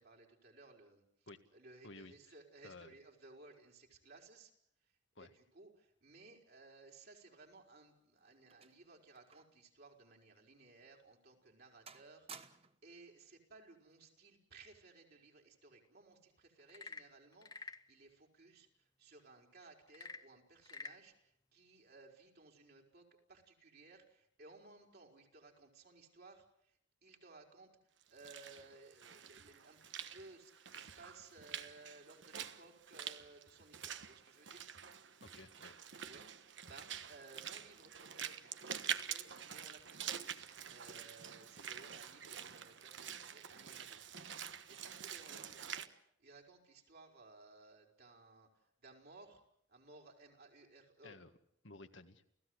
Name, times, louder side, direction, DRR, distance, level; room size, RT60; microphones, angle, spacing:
voice 1, 0.0-4.5 5.2-27.7 28.1-34.7 36.0-40.1 40.7-49.4 49.7-51.2, right 3 dB, 55° right, 0 dB, 4.7 m, -60 dB
voice 2, 1.8-2.3 2.6-2.9 5.2-5.3 35.2-35.7 51.0-51.3 51.6-52.3, left 3 dB, 75° left, 7 dB, 1.8 m, -54 dB
sound 1, 7.7-9.7 10.0-10.1 10.8-10.9 11.3-11.6 11.9-12.9 13.9-14.2, right 6 dB, 30° right, 1.2 m, -57 dB
Frog / Percussion / Wood, 16.6-17.9 19.9-21.0, left 4 dB, 20° left, 0.9 m, -49 dB
Walk footsteps / Splash splatter, 28.0-45.9, right 9 dB, 70° right, 1.2 m, -47 dB
29.5 x 16.5 x 8.1 m, 0.74 s
head